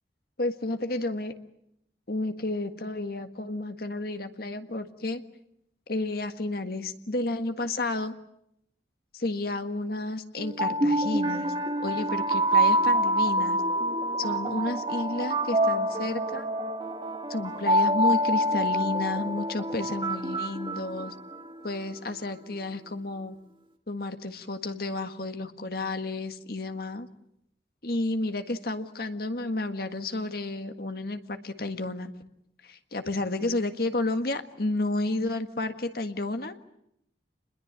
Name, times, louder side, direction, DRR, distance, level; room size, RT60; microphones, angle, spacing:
voice 1, 0.4-1.3 2.1-5.2 5.9-8.1 9.1-11.5 11.8-13.6 14.2-16.4 17.3-21.1 21.6-23.4 23.9-27.1 27.8-32.1 32.6-36.5, left 2 dB, 55° left, 8 dB, 1.7 m, -31 dB
sound 1, 10.4-21.5, right 1 dB, 25° right, 2.2 m, -26 dB
27.5 x 21.5 x 8.8 m, 0.77 s
head